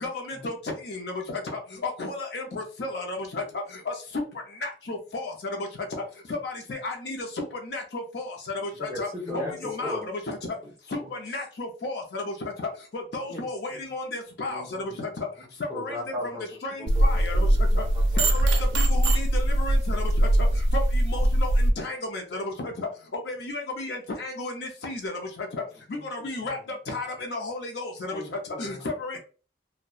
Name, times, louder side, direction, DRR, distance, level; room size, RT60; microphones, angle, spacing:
voice 1, 0.0-0.5 0.9-1.1 2.0-3.4 3.9-4.0 4.6-5.3 6.4-7.2 7.7-8.3 8.8-9.1 9.3-10.0 10.3-10.4 10.9-11.0 11.2-12.2 12.9-14.6 15.0-15.3 15.7-16.0 16.6-17.4 17.8-17.9 18.2-20.0 20.7-21.5 21.8-22.4 23.3-25.1 26.1-26.6 26.9-27.9 28.6-29.2, left 2 dB, 65° left, 2 dB, 0.5 m, -33 dB
voice 2, 8.8-10.1 14.5-15.0 15.7-16.4 16.8-17.2 17.7-18.3, left 1 dB, 15° right, -3 dB, 0.7 m, -36 dB
voice 3, 10.6-11.1 13.3-13.9 16.8-17.0 17.3-17.8 25.9-26.5 28.1-28.9 29.1-29.2, left 1 dB, 20° left, -2 dB, 0.7 m, -44 dB
sound 1, 16.9-21.7, right 1 dB, 90° right, 0.4 m, -21 dB
2.6 x 2.1 x 2.3 m, 0.36 s
head